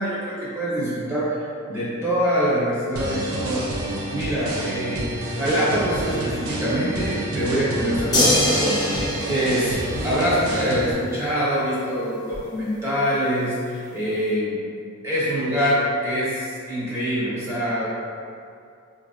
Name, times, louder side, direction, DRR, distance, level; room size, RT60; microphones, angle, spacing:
voice 1, 0.0-1.4 1.7-3.6 4.1-8.9 9.2-9.7 10.0-14.6 15.0-17.9, equal, 10° right, -10 dB, 0.9 m, -24 dB
sound 1, 3.0-10.9, right 1 dB, 80° right, 0.6 m, -29 dB
sound 2, 8.1-10.6 12.3-12.4, left 1 dB, 20° left, 0.7 m, -23 dB
4.5 x 2.5 x 2.3 m, 2.4 s
head